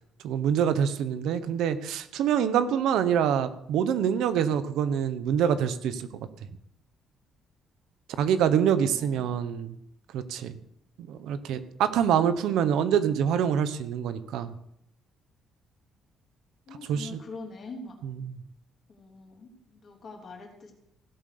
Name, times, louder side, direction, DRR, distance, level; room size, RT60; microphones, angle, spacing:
voice 1, 0.2-6.1 8.2-9.8 10.1-10.6 11.1-14.5 16.9-17.2 18.0-18.4, right 8 dB, 80° right, 12 dB, 1.1 m, -25 dB
voice 2, 8.9-9.4 16.7-18.0 18.9-20.7, left 3 dB, 35° left, 1 dB, 3.4 m, -44 dB
16.5 x 8.1 x 6.8 m, 0.74 s
cardioid pair, 175°, 0 cm